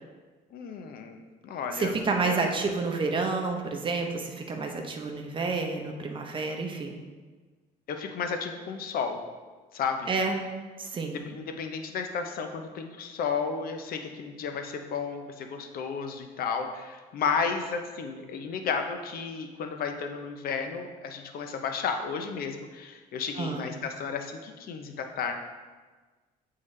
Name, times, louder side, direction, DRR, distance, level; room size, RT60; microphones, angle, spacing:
voice 1, 0.5-2.0 2.2-2.4 7.9-9.2 9.7-10.1 11.3-25.3, left 5 dB, 60° left, 5 dB, 0.7 m, -33 dB
voice 2, 1.7-7.0 10.1-10.4 10.8-11.2 23.4-23.7, right 4 dB, 30° right, 3 dB, 0.8 m, -29 dB
8.0 x 3.8 x 3.2 m, 1.4 s
cardioid pair, 110°, 17 cm